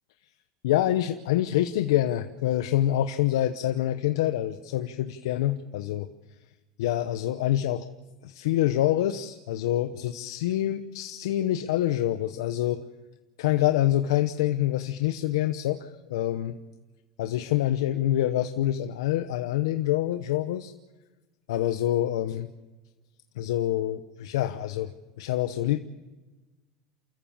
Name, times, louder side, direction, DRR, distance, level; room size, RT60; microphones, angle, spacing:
voice 1, 0.6-6.1 6.8-7.9 8.2-12.8 13.4-16.6 17.2-20.7 21.5-22.5 23.4-25.8, left 13 dB, 90° left, 9 dB, 0.8 m, -26 dB
29.0 x 14.5 x 7.3 m, 1.2 s
supercardioid pair, 115°, 2 cm